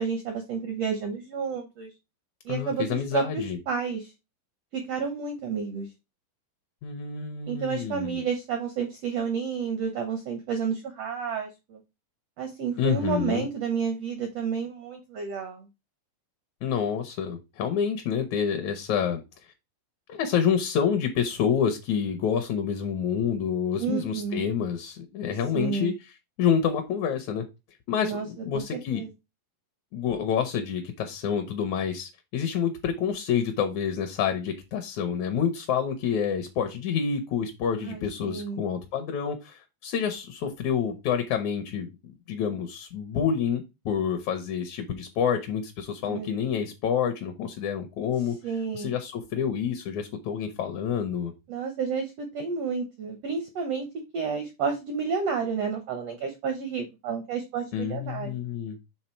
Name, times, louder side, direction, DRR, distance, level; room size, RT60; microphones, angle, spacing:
voice 1, 0.0-1.9 2.4-4.1 4.7-5.9 7.5-11.8 12.4-15.6 23.8-24.5 25.5-25.9 28.0-28.3 28.5-29.1 37.8-38.6 46.1-46.3 48.4-49.0 51.5-53.9 54.1-58.4, right 6 dB, 85° right, 5 dB, 1.4 m, -30 dB
voice 2, 2.5-3.6 6.8-8.3 12.8-13.5 16.6-19.2 20.1-25.9 26.4-27.4 27.9-29.0 29.9-48.4 48.7-51.3 57.7-58.8, left 7 dB, 75° left, 6 dB, 1.8 m, -28 dB
7.2 x 3.6 x 4.4 m, 0.25 s
omnidirectional pair, 4.1 m